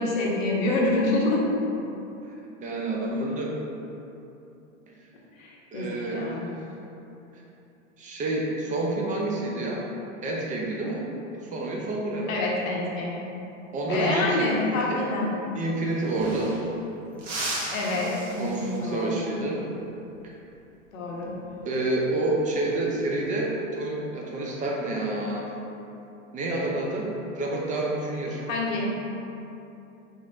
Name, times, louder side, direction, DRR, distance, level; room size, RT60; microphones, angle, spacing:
voice 1, 0.0-1.4 5.4-6.5 12.3-13.2 13.9-15.3 17.7-19.4 20.9-21.3 28.5-28.9, left 2 dB, 85° left, -3 dB, 0.9 m, -27 dB
voice 2, 2.6-3.5 5.7-6.4 8.0-9.9 10.2-11.1 11.3-12.5 13.7-14.5 14.8-15.1 15.5-16.5 18.4-19.6 20.2-20.3 21.6-25.5 26.3-27.1 27.3-28.4, right 2 dB, 20° right, -2 dB, 0.5 m, -28 dB
sound 1, 15.6-15.7 15.9-16.8 17.2-19.0 21.4-21.7 23.1-23.6, right 1 dB, 40° right, 1.0 m, -36 dB
3.8 x 3.2 x 2.5 m, 2.9 s
hypercardioid pair, 110°, 39 cm